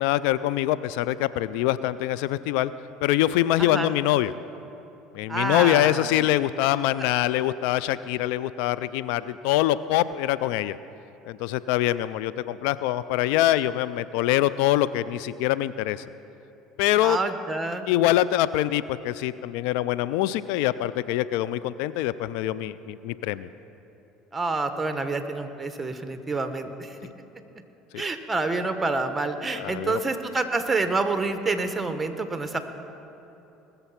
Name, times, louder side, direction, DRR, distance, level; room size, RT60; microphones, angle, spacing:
voice 1, 0.0-2.7 3.0-4.3 5.1-10.8 11.2-16.0 16.8-17.2 17.9-23.5 27.0-27.1 27.9-28.0 29.5-30.0, left 14 dB, 75° left, 16 dB, 0.3 m, -24 dB
voice 2, 3.6-3.9 5.3-6.1 17.0-17.9 24.3-27.0 28.0-32.6, right 3 dB, 15° right, 8 dB, 1.2 m, -28 dB
19.5 x 6.9 x 5.8 m, 3.0 s
hypercardioid pair, 80°, 0 cm